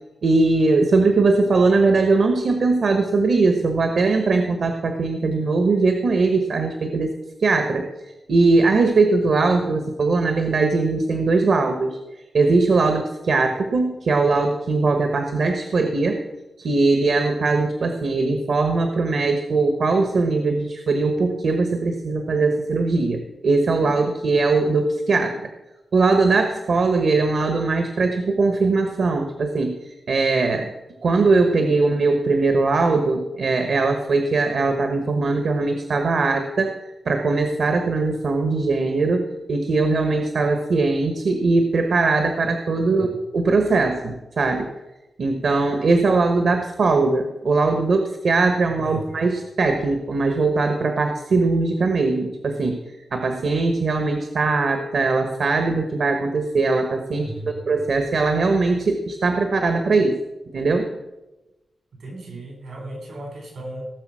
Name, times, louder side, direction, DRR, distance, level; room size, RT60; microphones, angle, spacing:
voice 1, 0.2-7.1 7.4-12.0 12.3-16.2 16.6-25.5 25.9-30.7 31.0-44.7 45.2-57.3 57.7-60.2 60.5-60.9, right 3 dB, 70° right, 6 dB, 1.2 m, -20 dB
voice 2, 57.2-57.7 62.0-63.9, right 1 dB, 85° right, 1 dB, 5.1 m, -36 dB
17.0 x 6.9 x 6.2 m, 1.0 s
wide cardioid pair, 115°, 0 cm